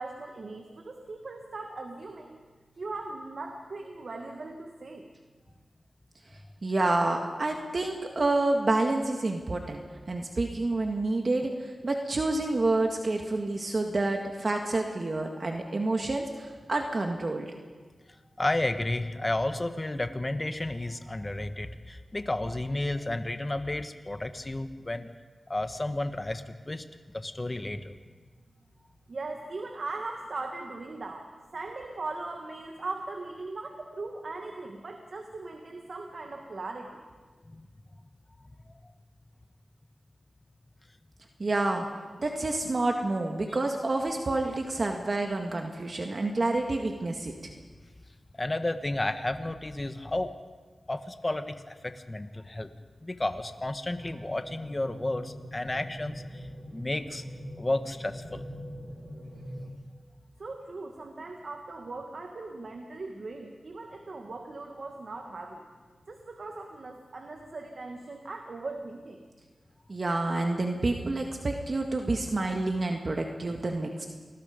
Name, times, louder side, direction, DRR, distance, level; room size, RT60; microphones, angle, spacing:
voice 1, 0.0-2.4 2.8-5.1 29.1-37.0 60.4-65.7 66.1-69.2, right 3 dB, 65° right, 3 dB, 1.9 m, -39 dB
voice 2, 6.6-9.8 10.1-17.5 41.4-41.9 42.2-47.5 69.9-74.1, right 2 dB, 50° right, 2 dB, 1.9 m, -28 dB
voice 3, 18.4-25.1 25.5-26.8 27.1-27.9 37.5-37.7 38.6-38.7 48.3-50.3 50.9-52.7 53.0-57.2 57.6-58.4, left 2 dB, 25° left, 8 dB, 1.5 m, -32 dB
sound 1, 54.0-59.7, equal, 25° right, 6.4 m, -42 dB
28.5 x 20.0 x 5.3 m, 1.4 s
wide cardioid pair, 65°, 0 cm